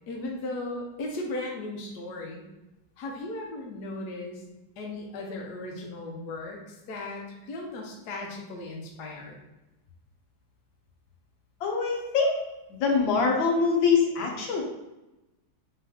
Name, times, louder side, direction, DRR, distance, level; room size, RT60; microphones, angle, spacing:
voice 1, 0.1-2.4 3.0-4.4 4.8-9.4, left 2 dB, 65° left, -1 dB, 1.2 m, -36 dB
voice 2, 11.6-12.4 12.7-14.6, left 5 dB, 80° left, 0 dB, 1.6 m, -24 dB
4.1 x 3.9 x 2.8 m, 0.98 s
omnidirectional pair, 2.1 m